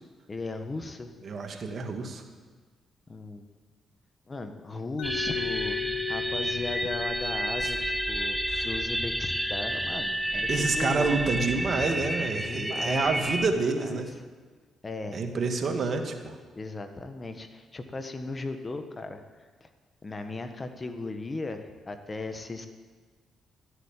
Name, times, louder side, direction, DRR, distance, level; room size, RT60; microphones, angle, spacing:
voice 1, 0.3-1.1 3.1-3.5 4.3-11.1 12.3-13.3 13.5-14.0 14.8-15.2 15.8-15.9 16.5-19.2 19.6-19.7 20.0-22.7, left 3 dB, 30° left, 7 dB, 1.4 m, -37 dB
voice 2, 1.2-2.2 7.6-7.7 8.5-8.7 10.5-14.1 15.1-16.4, right 4 dB, 50° right, 5 dB, 1.8 m, -28 dB
Mallet percussion, 5.0-10.8, left 10 dB, 85° left, 1.3 m, -38 dB
sound 1, 5.0-13.5, right 1 dB, 5° right, 1.0 m, -30 dB
13.5 x 8.2 x 8.9 m, 1.5 s
supercardioid pair, 65°, 0 cm